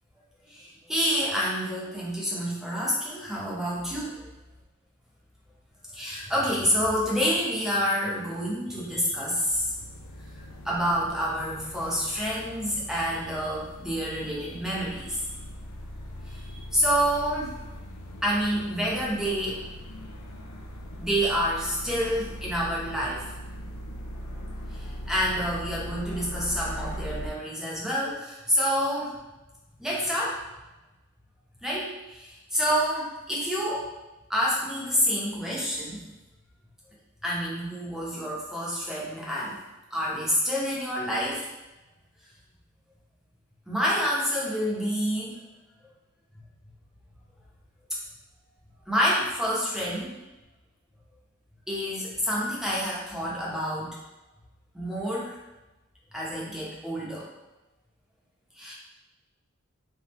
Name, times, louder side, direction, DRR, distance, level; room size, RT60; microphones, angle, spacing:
voice 1, 0.5-4.3 5.9-9.7 10.6-15.3 16.3-16.5 16.7-17.7 18.2-19.6 21.0-23.3 24.7-29.1 29.8-30.4 31.6-33.9 34.3-36.0 37.2-39.6 39.9-41.5 43.7-45.4 48.9-50.1 51.7-54.0 54.7-55.4 56.1-57.3 58.6-58.7, equal, ahead, -6 dB, 0.9 m, -28 dB
sound 1, 9.5-27.3, equal, 90° left, 0.5 m, -40 dB
3.6 x 3.4 x 3.1 m, 1.0 s
head